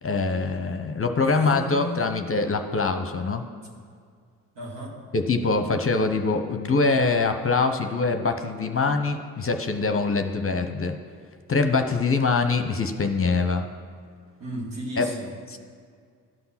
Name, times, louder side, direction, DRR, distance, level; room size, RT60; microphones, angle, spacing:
voice 1, 0.0-3.4 5.1-11.0 11.5-13.6 15.0-15.1 15.5-15.6, left 4 dB, 30° left, 7 dB, 0.9 m, -24 dB
voice 2, 1.2-2.1 4.5-5.0 14.4-15.3, right 1 dB, 65° right, -2 dB, 2.5 m, -34 dB
12.5 x 5.7 x 5.8 m, 2.1 s
hypercardioid pair, 45°, 46 cm